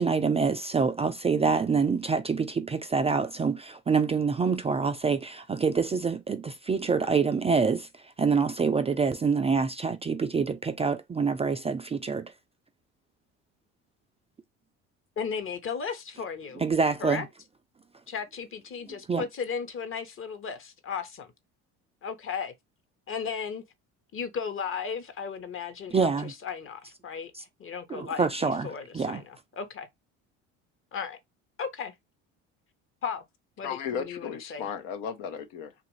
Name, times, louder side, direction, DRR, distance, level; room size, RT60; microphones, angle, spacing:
voice 1, 0.0-12.3 16.6-17.3 19.1-19.2 25.9-26.3 27.3-27.4 27.9-29.2, right 5 dB, 20° right, 0.3 m, -26 dB
voice 2, 15.2-16.6 17.0-17.2 18.1-21.3 22.0-22.5 23.1-23.6 24.1-29.9 30.9-31.2 31.6-31.9 33.0-33.2 33.6-34.6, left 6 dB, 40° left, 1.0 m, -35 dB
voice 3, 33.6-35.7, left 7 dB, 75° left, 0.8 m, -35 dB
3.0 x 2.5 x 3.0 m
supercardioid pair, 75°, 34 cm